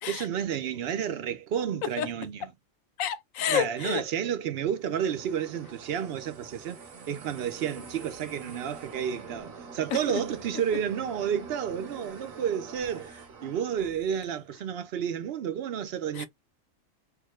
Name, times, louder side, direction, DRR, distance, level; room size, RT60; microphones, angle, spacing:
voice 1, 0.1-2.5 3.5-6.8 7.1-13.1 13.4-16.3, right 8 dB, 60° right, 0.7 m, -31 dB
voice 2, 3.0-4.0 9.9-10.2 16.1-16.3, left 10 dB, 85° left, 1.0 m, -29 dB
sound 1, 4.6-14.3, right 5 dB, 90° right, 1.4 m, -45 dB
3.4 x 2.2 x 3.0 m
omnidirectional pair, 1.4 m